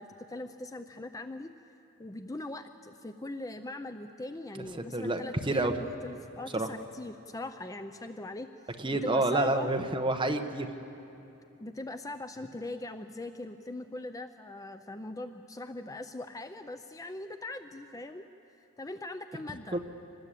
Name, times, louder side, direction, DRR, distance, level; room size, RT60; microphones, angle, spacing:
voice 1, 0.0-1.5 2.0-8.5 9.0-9.7 11.6-18.3 18.8-19.8, left 2 dB, 15° left, 9 dB, 0.5 m, -41 dB
voice 2, 4.9-5.7 6.5-6.7 8.8-10.7 19.7-19.8, right 2 dB, 20° right, 5 dB, 1.1 m, -28 dB
25.0 x 20.0 x 8.4 m, 2.8 s
head